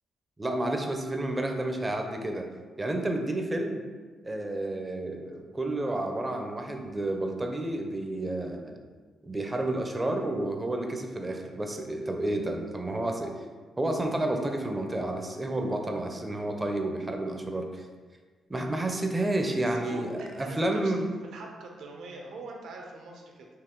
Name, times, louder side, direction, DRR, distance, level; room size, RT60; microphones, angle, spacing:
voice 1, 0.4-2.5 2.8-3.8 4.2-8.8 9.2-13.4 13.8-17.9 18.5-21.1, right 1 dB, 15° right, 3 dB, 0.5 m, -30 dB
voice 2, 19.5-23.5, right 2 dB, 75° right, 1 dB, 0.7 m, -43 dB
4.7 x 2.8 x 3.7 m, 1.4 s
cardioid pair, 135°, 0 cm